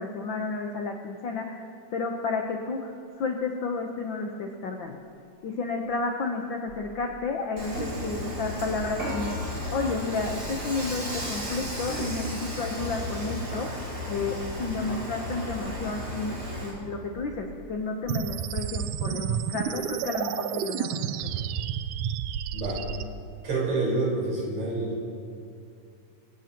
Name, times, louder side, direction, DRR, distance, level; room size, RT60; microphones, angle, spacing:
voice 1, 0.0-1.7 1.9-2.9 3.2-5.0 5.4-9.5 9.7-21.1, left 4 dB, 75° left, 2 dB, 1.0 m, -31 dB
sound 1, 2.9-3.0 3.2-3.3 4.8-6.1 6.7-7.1 7.6-8.0 8.5-8.9 9.4-9.8 10.2-10.8 11.2-12.0 12.3-12.4 14.4-14.9 15.3-15.8 16.2-16.7 17.2-17.6 18.0-18.4 18.8-19.3 19.6-19.9, left 2 dB, 50° left, 2.2 m, -47 dB
Dishes pots and pans / Frying (food), 7.6-16.7, equal, 30° right, 3.9 m, -34 dB
sound 2, 18.1-23.0, right 9 dB, 85° right, 2.0 m, -30 dB
voice 2, 22.5-22.8 23.4-25.0, right 2 dB, 60° right, -5 dB, 5.9 m, -27 dB
25.5 x 16.5 x 3.0 m, 2.4 s
omnidirectional pair, 3.5 m